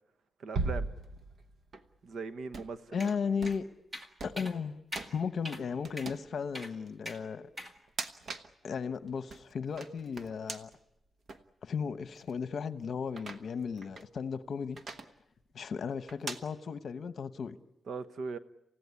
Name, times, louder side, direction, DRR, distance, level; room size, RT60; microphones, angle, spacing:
voice 1, 0.4-0.9 2.0-3.1 17.9-18.4, right 4 dB, 65° right, 1.1 m, -39 dB
Bass drum, 0.5-2.0, right 3 dB, 85° right, 1.5 m, -35 dB
sound 1, 0.9-1.8 2.4-2.7 3.4-3.7 4.2-4.5 5.0-5.2 5.8-6.3 6.9-7.0 7.8-8.5 9.0-10.8 11.3-11.4 12.2-12.3 13.1-14.1 14.8-15.1 16.1-16.4, right 3 dB, 50° right, 1.2 m, -43 dB
voice 2, 2.9-3.6 4.2-7.5 8.6-10.7 11.6-14.8 15.5-17.6, left 6 dB, 55° left, 1.0 m, -35 dB
sound 2, 3.0-3.2 3.5-3.6 3.9-4.1 4.4-4.5 4.9-5.1 5.4-5.6 6.0-6.1 6.5-6.7 7.0-7.2 7.6-7.7, equal, 20° right, 1.9 m, -42 dB
28.5 x 16.0 x 9.8 m
wide cardioid pair, 170°, 0 cm